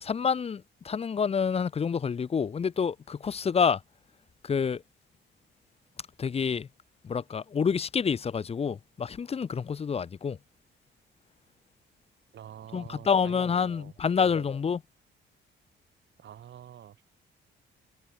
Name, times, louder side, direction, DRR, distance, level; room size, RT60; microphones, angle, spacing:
voice 1, 0.0-3.8 4.4-4.8 6.2-6.7 7.0-10.4 12.7-14.8, left 6 dB, 30° left, 0.6 m, -28 dB
voice 2, 12.3-14.5 16.2-17.1, right 10 dB, 65° right, 5.1 m, -47 dB
cardioid pair, 90°, 20 cm